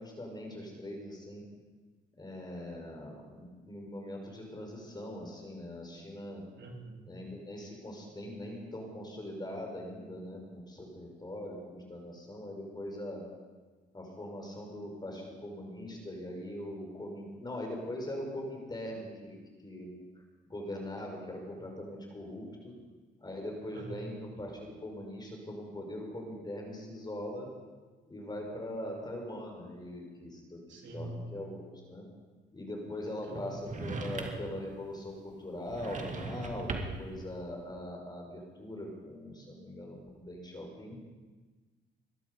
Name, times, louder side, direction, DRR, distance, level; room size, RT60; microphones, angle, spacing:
voice 1, 0.0-1.4 2.2-6.4 7.1-13.2 13.9-19.9 20.5-22.7 23.2-27.5 28.1-32.0 32.5-40.9, left 1 dB, 20° left, 1 dB, 5.7 m, -41 dB
voice 2, 6.6-7.1 23.7-24.0 30.7-31.2 33.2-33.7 40.8-40.9, right 2 dB, 65° right, 0 dB, 3.5 m, -45 dB
sound 1, 33.6-34.6 35.7-37.1, right 3 dB, 40° right, 2.3 m, -38 dB
20.5 x 12.5 x 5.5 m, 1.3 s
cardioid pair, 90°, 20 cm